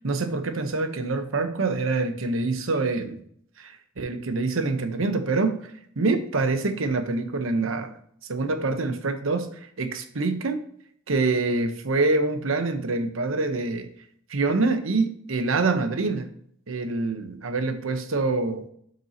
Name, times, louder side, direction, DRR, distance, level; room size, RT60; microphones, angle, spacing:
voice 1, 0.0-3.2 3.6-5.7 6.0-7.9 8.3-10.6 11.1-13.9 14.3-16.3 16.7-18.7, right 3 dB, 90° right, 8 dB, 0.9 m, -25 dB
7.8 x 6.0 x 2.8 m, 0.66 s
head